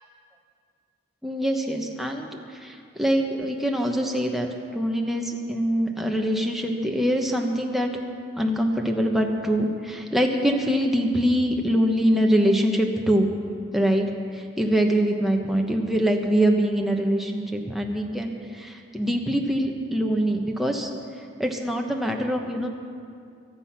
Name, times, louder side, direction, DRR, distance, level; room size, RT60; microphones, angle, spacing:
voice 1, 1.2-4.5 4.7-7.9 8.4-13.3 13.7-14.1 14.3-20.9 21.4-22.7, equal, ahead, 1 dB, 1.1 m, -24 dB
23.0 x 7.8 x 5.9 m, 2.4 s
head